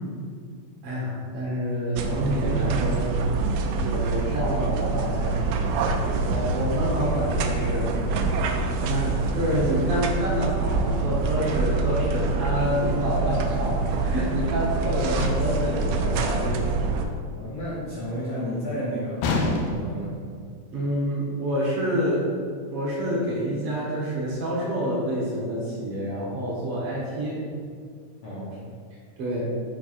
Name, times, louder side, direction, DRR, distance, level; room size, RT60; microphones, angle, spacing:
voice 1, 0.8-3.1 3.8-7.9 8.9-16.6 20.7-22.3 22.7-27.4 29.2-29.5, equal, 60° right, -5 dB, 1.8 m, -28 dB
sound 1, 2.0-17.1, right 3 dB, 80° right, 1.5 m, -26 dB
sound 2, 15.2-15.7 19.2-20.0, left 2 dB, 85° left, 2.0 m, -26 dB
voice 2, 17.3-20.2 28.2-28.6, equal, 65° left, -8 dB, 1.3 m, -32 dB
8.7 x 4.5 x 2.5 m, 2.1 s
omnidirectional pair, 3.4 m